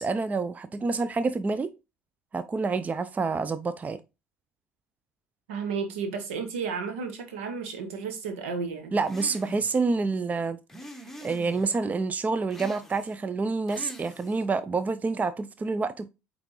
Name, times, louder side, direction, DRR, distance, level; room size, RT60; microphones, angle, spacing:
voice 1, 0.0-1.7 2.3-4.0 8.9-10.6 11.2-16.1, right 4 dB, 20° right, 0.5 m, -28 dB
voice 2, 5.5-8.9, right 5 dB, 70° right, 1.3 m, -32 dB
sound 1, 9.0-9.8 10.7-11.7 12.5-13.2 13.7-14.5, equal, 5° left, 1.1 m, -44 dB
8.7 x 3.6 x 3.1 m
figure-of-eight pair, 60°, 7 cm